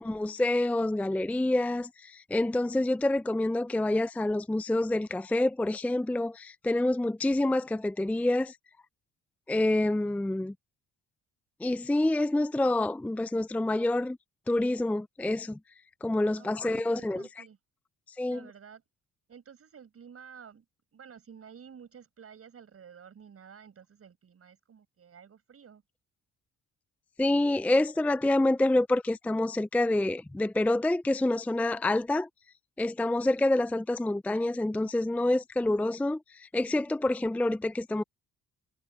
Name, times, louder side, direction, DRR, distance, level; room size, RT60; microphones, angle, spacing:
voice 1, 0.0-8.6 9.5-10.5 11.6-14.2 14.5-15.6 16.0-17.2 18.2-18.4 27.2-32.3 32.8-38.0, left 1 dB, 5° left, 0.4 m, -27 dB
voice 2, 16.3-17.6 18.3-18.8 19.3-20.6 20.9-25.8, right 7 dB, 50° right, 6.4 m, -51 dB
cardioid pair, 90°, 30 cm